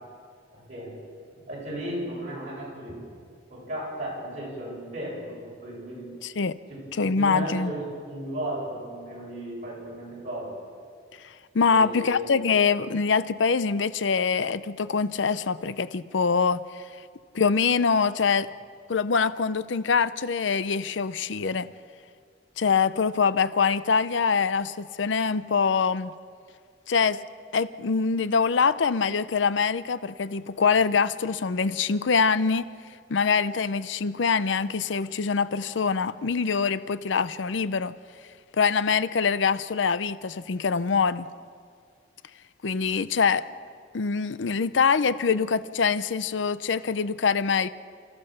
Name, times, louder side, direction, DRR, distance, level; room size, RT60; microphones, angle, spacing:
voice 1, 0.5-1.0 1.3-3.0 3.5-6.1 6.7-10.5 11.7-12.2, equal, 40° right, -5 dB, 7.6 m, -35 dB
voice 2, 6.2-6.6 7.0-7.7 11.2-16.8 17.3-18.5 18.9-21.7 22.6-26.1 26.9-27.2 27.5-32.7 33.1-37.9 38.6-41.3 42.6-43.4 43.9-47.7, left 5 dB, 90° left, 15 dB, 0.6 m, -24 dB
30.0 x 14.5 x 6.5 m, 2.1 s
head